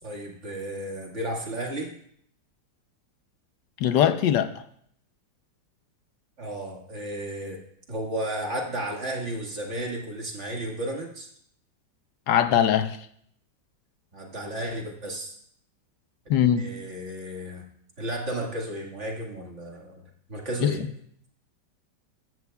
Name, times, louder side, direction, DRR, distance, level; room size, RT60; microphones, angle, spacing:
voice 1, 0.0-1.9 6.4-7.6 7.9-11.3 14.1-15.4 16.6-17.6 18.0-20.0 20.3-20.8, right 1 dB, 40° right, 0 dB, 2.0 m, -33 dB
voice 2, 3.8-4.5 12.3-13.1 16.3-16.7 20.6-20.9, left 10 dB, 75° left, 10 dB, 1.3 m, -21 dB
14.0 x 14.0 x 2.3 m, 0.67 s
omnidirectional pair, 1.9 m